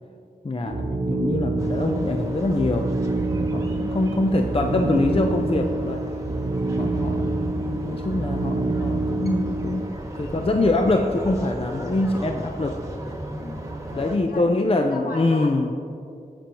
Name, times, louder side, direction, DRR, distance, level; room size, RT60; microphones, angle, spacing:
voice 1, 0.4-2.9 3.3-6.2 6.8-9.9 10.2-12.8 13.9-15.7, left 2 dB, 35° left, 4 dB, 0.6 m, -24 dB
sound 1, 0.7-9.9, right 2 dB, 50° right, 0.8 m, -27 dB
sound 2, 1.6-14.2, right 1 dB, 20° right, 1.4 m, -35 dB
voice 2, 3.5-4.0 13.4-15.7, left 2 dB, 65° left, 1 dB, 1.5 m, -39 dB
20.5 x 7.0 x 3.0 m, 2.5 s
wide cardioid pair, 60°, 16 cm